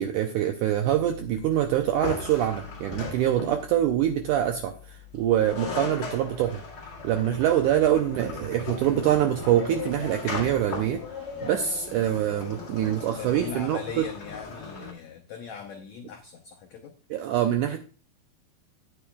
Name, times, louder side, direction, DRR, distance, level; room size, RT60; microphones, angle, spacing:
voice 1, 0.0-6.6 7.0-11.0 11.4-14.0 17.1-17.8, right 11 dB, 85° right, 5 dB, 1.8 m, -25 dB
Piano, 0.9-12.2, left 5 dB, 65° right, 2.6 m, -49 dB
sound 1, 2.0-3.8 5.1-5.2 5.4-14.9, left 4 dB, 35° left, 1.8 m, -37 dB
voice 2, 13.2-16.9, left 6 dB, 90° left, 3 dB, 1.5 m, -40 dB
12.0 x 9.2 x 2.3 m, 0.38 s
omnidirectional pair, 4.3 m